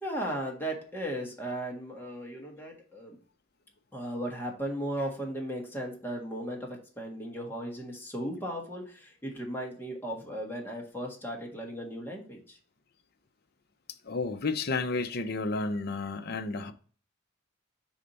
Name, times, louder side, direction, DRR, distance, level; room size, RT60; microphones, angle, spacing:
voice 1, 0.0-3.2 3.9-12.6, equal, 10° left, 1.6 m, -36 dB
voice 2, 14.1-16.7, left 3 dB, 55° left, 0.7 m, -31 dB
4.9 x 4.3 x 5.3 m
head